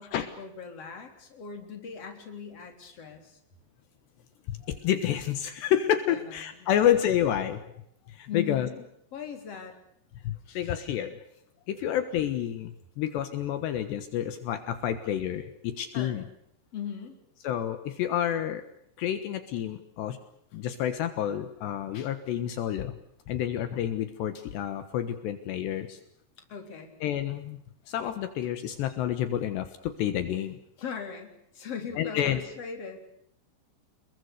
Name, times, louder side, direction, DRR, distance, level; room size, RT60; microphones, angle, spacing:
voice 1, 0.0-3.4 6.1-6.7 8.3-8.8 9.1-9.8 15.9-16.3 16.7-17.2 26.4-26.9 30.8-33.0, left 6 dB, 35° left, 5 dB, 4.3 m, -39 dB
voice 2, 4.5-7.6 8.1-8.7 10.2-11.2 11.7-16.2 17.4-18.6 19.0-20.2 20.5-22.9 23.3-26.0 27.0-27.6 27.9-30.6 32.0-32.4, left 10 dB, 70° left, 10 dB, 3.4 m, -29 dB
28.0 x 22.0 x 6.8 m, 0.72 s
omnidirectional pair, 5.3 m